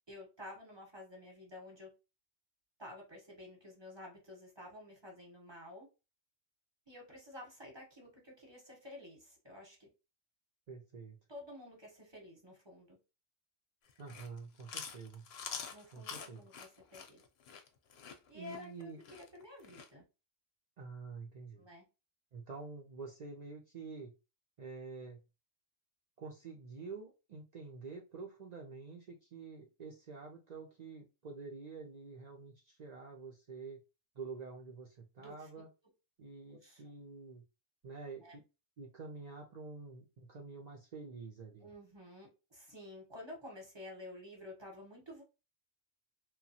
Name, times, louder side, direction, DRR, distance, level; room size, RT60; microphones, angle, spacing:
voice 1, 0.1-1.9 2.8-5.9 6.9-9.9 11.3-13.0 15.7-17.2 18.3-20.0 21.6-21.8 35.2-35.5 36.5-36.8 38.2-38.4 41.6-45.2, left 1 dB, 25° right, -1 dB, 0.9 m, -51 dB
voice 2, 10.7-11.2 14.0-15.2 15.9-16.4 18.3-19.0 20.8-21.7 22.3-24.1 24.6-25.2 26.2-33.8 34.2-35.7 36.2-37.4 37.8-38.4 38.8-41.7, right 4 dB, 60° right, 0 dB, 0.4 m, -48 dB
Chewing mastication, 13.9-19.9, left 6 dB, 65° left, 0.7 m, -46 dB
2.9 x 2.2 x 2.7 m, 0.28 s
omnidirectional pair, 1.3 m